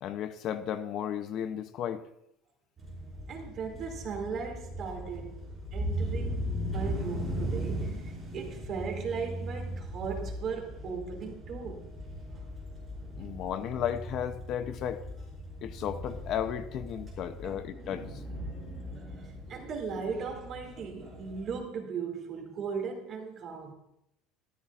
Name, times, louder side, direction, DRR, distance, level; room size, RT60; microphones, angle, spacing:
voice 1, 0.0-2.1 13.2-15.0 15.6-18.2 18.5-18.8, left 9 dB, 45° left, 0.6 m, -34 dB
sound 1, 2.8-21.6, equal, 15° right, 5.3 m, -38 dB
voice 2, 3.3-5.4 5.7-11.9 12.3-12.4 17.4-17.6 19.5-23.7, right 5 dB, 40° right, 2.4 m, -37 dB
13.5 x 13.5 x 2.5 m
cardioid pair, 140°, 0 cm